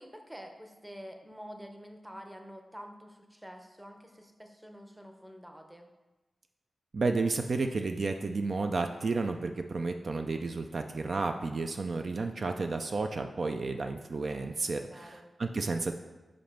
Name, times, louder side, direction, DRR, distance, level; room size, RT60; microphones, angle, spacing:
voice 1, 0.0-5.9 14.8-15.3, equal, 5° right, 4 dB, 0.7 m, -48 dB
voice 2, 6.9-15.9, right 3 dB, 50° right, 6 dB, 0.4 m, -32 dB
5.2 x 5.1 x 5.8 m, 1.1 s
wide cardioid pair, 135°, 0 cm